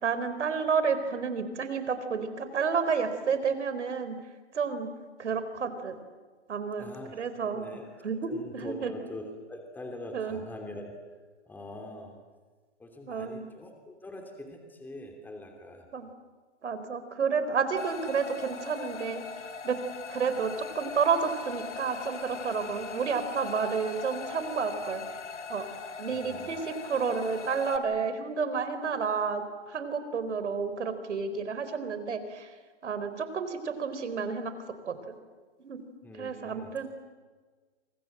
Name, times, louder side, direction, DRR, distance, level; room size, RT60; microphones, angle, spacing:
voice 1, 0.0-4.2 4.5-4.9 5.2-6.0 6.5-7.8 8.0-8.9 10.1-10.4 13.1-13.5 15.9-16.1 16.6-19.2 19.6-19.8 20.1-25.0 25.5-25.7 26.0-32.5 32.8-34.5 34.9-35.2 35.6-35.8 36.2-36.9, right 5 dB, 85° right, 10 dB, 4.3 m, -30 dB
voice 2, 6.8-7.8 8.3-10.9 11.5-12.1 12.8-15.9 26.1-26.6 36.0-36.7, left 1 dB, 5° left, 3 dB, 2.9 m, -43 dB
sound 1, 17.8-27.8, left 5 dB, 90° left, 2.8 m, -40 dB
29.5 x 26.0 x 7.8 m, 1.4 s
hypercardioid pair, 150°, 34 cm